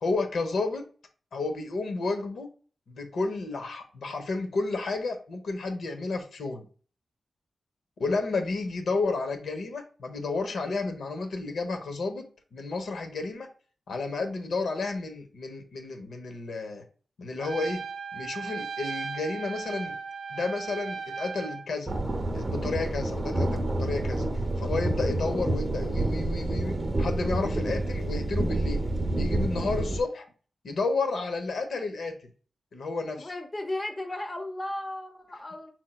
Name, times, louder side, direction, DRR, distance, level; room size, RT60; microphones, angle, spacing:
voice 1, 0.0-0.9 1.3-2.5 2.9-6.6 8.0-12.3 12.5-13.5 13.9-16.8 17.2-17.8 18.1-20.0 20.3-21.9 22.3-24.2 24.6-28.8 29.2-30.2 30.6-32.1 32.7-33.3, left 3 dB, 80° left, 6 dB, 0.9 m, -31 dB
Trumpet, 17.4-21.7, right 5 dB, 70° right, 0.4 m, -36 dB
sound 1, 21.9-30.0, right 2 dB, 30° right, 0.7 m, -28 dB
voice 2, 33.1-35.7, left 1 dB, 25° left, 6 dB, 0.6 m, -35 dB
4.5 x 4.3 x 2.3 m, 0.39 s
wide cardioid pair, 135°, 0 cm